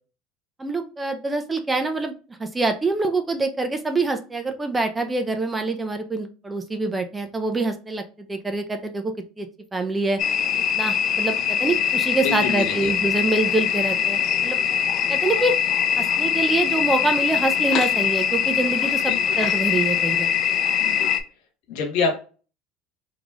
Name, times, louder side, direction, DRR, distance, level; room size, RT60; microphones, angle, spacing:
voice 1, 0.6-2.1 2.4-10.2 10.8-14.6 15.1-15.6 16.0-20.3, right 3 dB, 15° right, 6 dB, 0.6 m, -25 dB
sound 1, 10.2-21.2, left 8 dB, 50° left, 0.5 m, -22 dB
voice 2, 12.2-12.9 19.1-19.4 20.8-21.1 21.7-22.1, left 4 dB, 75° left, 3 dB, 1.4 m, -26 dB
3.8 x 3.1 x 2.4 m, 0.35 s
supercardioid pair, 115°, 0 cm